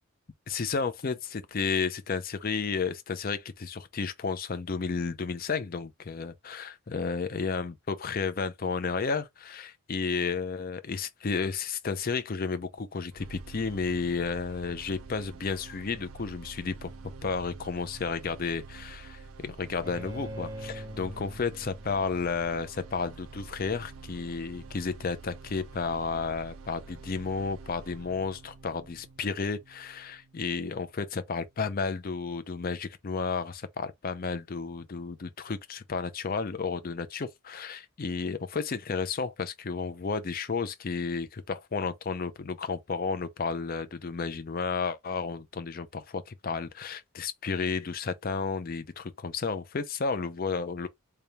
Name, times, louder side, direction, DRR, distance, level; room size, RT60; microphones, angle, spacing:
voice 1, 0.5-16.9 17.2-50.9, left 5 dB, 40° left, 0.5 m, -32 dB
sound 1, 13.1-31.1, right 4 dB, 75° right, 0.5 m, -47 dB
Bowed string instrument, 19.8-22.9, equal, 15° right, 0.7 m, -43 dB
3.4 x 2.3 x 4.1 m
head